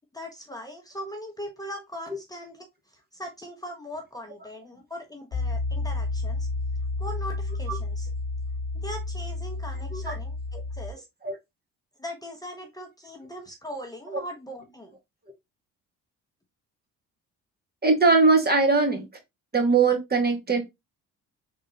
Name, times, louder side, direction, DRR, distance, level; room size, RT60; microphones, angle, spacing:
voice 1, 0.1-6.5 7.0-8.1 8.7-11.1 12.0-14.9, equal, 10° left, 1.0 m, -40 dB
Piano, 5.3-10.9, left 3 dB, 50° left, 0.9 m, -31 dB
voice 2, 17.8-19.1 19.5-20.6, right 4 dB, 30° right, 1.6 m, -21 dB
3.7 x 3.6 x 2.8 m
supercardioid pair, 70°, 33 cm